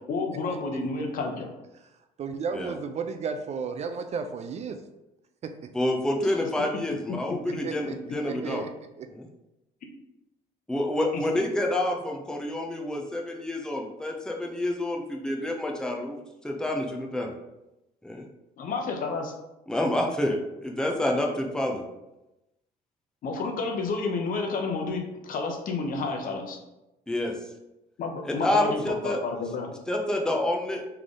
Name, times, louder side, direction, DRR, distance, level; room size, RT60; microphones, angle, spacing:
voice 1, 0.1-1.5 18.6-19.3 23.2-26.6 28.0-29.7, left 3 dB, 55° left, 2 dB, 0.9 m, -30 dB
voice 2, 2.2-4.8 5.4-5.6 7.6-8.0 8.2-8.7 9.0-9.1, right 5 dB, 40° right, 8 dB, 0.4 m, -33 dB
voice 3, 5.7-8.6 9.1-9.3 10.7-16.2 16.4-17.3 18.0-18.2 19.7-21.8 27.1-27.3 28.2-29.2 29.9-30.9, left 1 dB, 5° left, 1 dB, 0.6 m, -28 dB
3.7 x 3.4 x 3.7 m, 0.95 s
cardioid pair, 110°, 17 cm